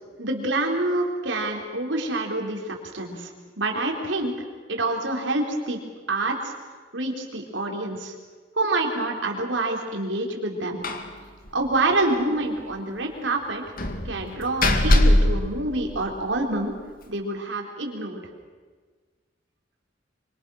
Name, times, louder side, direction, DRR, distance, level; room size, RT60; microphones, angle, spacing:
voice 1, 0.2-5.8 6.1-6.5 6.9-8.1 8.5-10.8 11.5-13.6 14.0-16.7 17.1-18.2, right 2 dB, 90° right, 1 dB, 4.0 m, -27 dB
Slam, 10.8-11.2 11.4-11.5 11.9-12.0 13.8-16.4, left 1 dB, 50° left, 2.2 m, -22 dB
25.5 x 25.0 x 6.4 m, 1.5 s
head